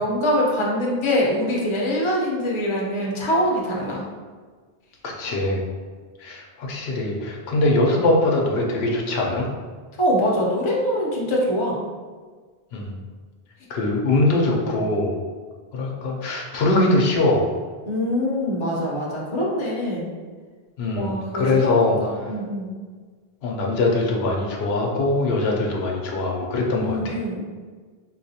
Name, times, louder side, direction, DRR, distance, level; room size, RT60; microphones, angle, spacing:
voice 1, 0.0-4.0 10.0-11.8 17.9-20.1 20.9-22.7 26.7-27.4, equal, 35° left, -4 dB, 0.7 m, -24 dB
voice 2, 5.0-5.6 6.2-9.5 12.7-12.9 13.7-15.2 15.7-17.5 20.8-22.0 23.4-27.2, left 2 dB, 85° left, -1 dB, 0.8 m, -22 dB
4.0 x 2.3 x 2.7 m, 1.5 s
omnidirectional pair, 1.0 m